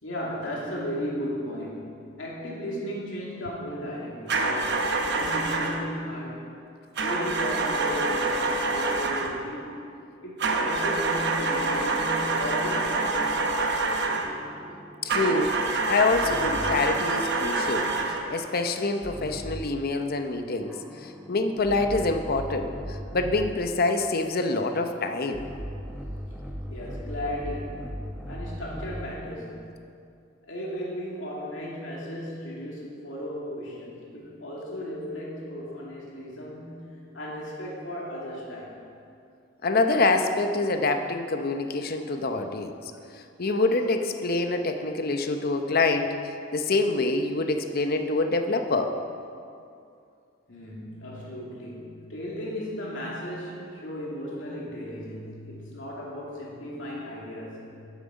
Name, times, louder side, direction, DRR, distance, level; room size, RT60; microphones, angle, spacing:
voice 1, 0.0-4.5 5.1-6.5 7.0-9.8 10.2-13.8 26.7-28.0 28.2-29.8 30.5-36.9 37.1-38.8 50.5-57.7, equal, 75° left, -4 dB, 2.6 m, -35 dB
Tractor won't start, 4.3-5.9 7.0-9.4 10.4-14.4 15.1-18.3, right 3 dB, 60° right, 1.0 m, -26 dB
sound 1, 14.2-17.0 19.0-19.8 20.7-23.7 25.3-29.2, equal, 5° right, 0.8 m, -38 dB
voice 2, 15.0-15.6 15.9-17.9 18.3-25.5 39.6-42.7 43.4-46.2 46.5-49.0, left 3 dB, 50° left, 7 dB, 0.7 m, -26 dB
12.5 x 7.6 x 5.2 m, 2.5 s
head